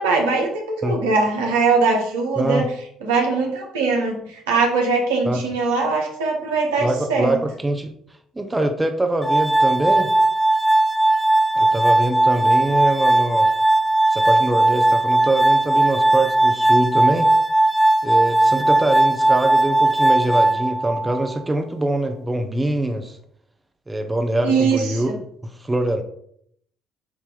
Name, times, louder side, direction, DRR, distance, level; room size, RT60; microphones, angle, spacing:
voice 1, 0.0-2.7 3.0-7.3 24.4-25.1, right 4 dB, 85° right, 1 dB, 1.2 m, -21 dB
voice 2, 2.4-2.7 5.3-5.4 6.8-7.9 8.3-10.1 11.5-13.5 14.1-17.3 18.0-23.2 23.9-25.1 25.4-26.0, right 1 dB, 20° right, 6 dB, 0.9 m, -23 dB
Glass, 9.2-21.2, right 2 dB, ahead, 0.6 m, -18 dB
8.4 x 2.9 x 3.9 m, 0.67 s
hypercardioid pair, 55°, 0 cm